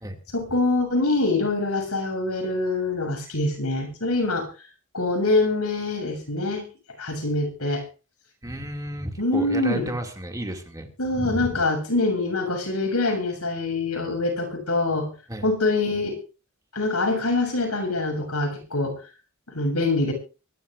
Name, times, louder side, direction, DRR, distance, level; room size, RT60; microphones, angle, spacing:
voice 1, 0.3-4.5 4.9-6.6 7.0-7.8 9.2-9.8 11.0-15.1 15.4-16.2 16.7-19.0 19.5-20.1, left 2 dB, 85° left, 4 dB, 7.2 m, -24 dB
voice 2, 8.4-11.6 15.3-15.5, right 1 dB, 15° right, 3 dB, 2.5 m, -32 dB
24.5 x 13.5 x 2.6 m, 0.33 s
head